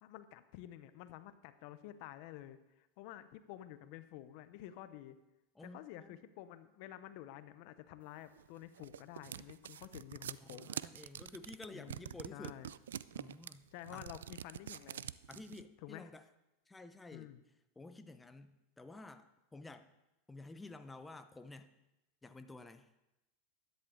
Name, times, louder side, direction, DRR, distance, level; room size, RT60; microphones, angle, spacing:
voice 1, 0.0-5.2 5.6-10.7 11.7-12.7 13.7-15.1 15.8-16.1 17.1-17.4, left 13 dB, 60° left, 12 dB, 0.7 m, -51 dB
voice 2, 5.5-6.2 10.4-12.6 13.1-14.1 15.3-16.3 16.7-17.3 17.8-19.9 20.3-21.7 22.2-22.9, left 2 dB, 10° left, 9 dB, 0.7 m, -52 dB
sound 1, 8.4-15.6, right 10 dB, 90° right, 0.3 m, -46 dB
12.5 x 10.5 x 3.8 m, 0.93 s
hypercardioid pair, 110°, 0 cm